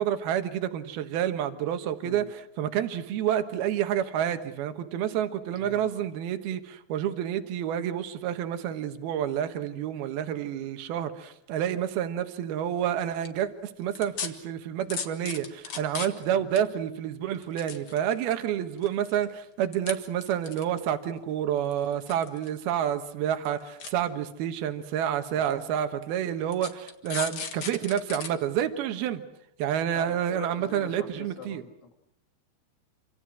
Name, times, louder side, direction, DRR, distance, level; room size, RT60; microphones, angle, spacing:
voice 1, 0.0-29.2 29.6-31.6, right 10 dB, 75° right, 8 dB, 3.2 m, -29 dB
voice 2, 5.6-6.0 16.3-16.5 25.3-25.5 29.9-31.9, left 6 dB, 90° left, 4 dB, 4.7 m, -44 dB
sound 1, 13.0-13.3 14.0-14.3 14.9-16.3 16.6-16.7 17.3-18.3 18.8-19.2 19.7-19.9 20.2-20.9 21.7-22.5 22.8-22.9 23.3-23.5 23.8-23.9 24.7-24.8 25.5-25.6 26.5-28.3 28.7-28.8, left 6 dB, 50° left, 1.9 m, -35 dB
27.5 x 26.0 x 6.2 m, 0.75 s
omnidirectional pair, 4.5 m